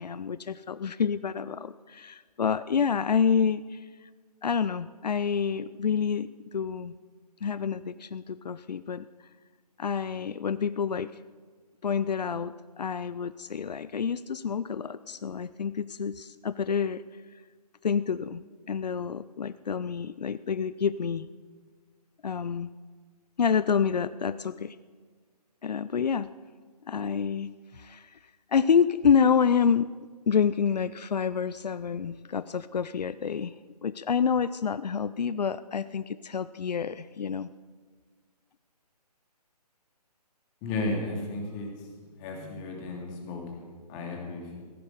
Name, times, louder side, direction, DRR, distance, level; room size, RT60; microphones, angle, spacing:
voice 1, 0.0-3.9 4.4-7.0 7.4-9.1 9.8-11.1 11.8-17.0 17.8-21.3 22.2-22.7 23.4-24.8 25.6-26.3 26.9-28.2 28.5-29.9 30.3-33.6 33.8-37.5, left 6 dB, 80° left, 15 dB, 0.5 m, -28 dB
voice 2, 40.6-41.7 42.2-44.6, left 2 dB, 25° left, 1 dB, 2.6 m, -34 dB
15.5 x 9.4 x 6.7 m, 1.5 s
figure-of-eight pair, 145°, 21 cm